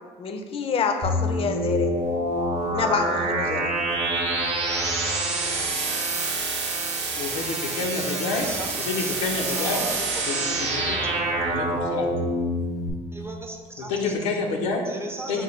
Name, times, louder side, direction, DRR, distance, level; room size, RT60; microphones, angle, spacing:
voice 1, 0.2-1.9 2.7-3.7, left 5 dB, 40° left, 5 dB, 0.5 m, -27 dB
sound 1, 1.0-12.9, right 2 dB, 50° right, 0.8 m, -26 dB
voice 2, 7.2-8.5 8.8-9.8 10.2-10.9 11.4-12.1 13.9-14.9 15.3-15.4, left 4 dB, 85° left, 1 dB, 0.6 m, -28 dB
voice 3, 9.5-10.5 13.1-14.1 14.8-15.4, right 2 dB, 15° right, 2 dB, 0.5 m, -37 dB
5.3 x 2.3 x 3.1 m, 1.5 s
supercardioid pair, 80°, 15 cm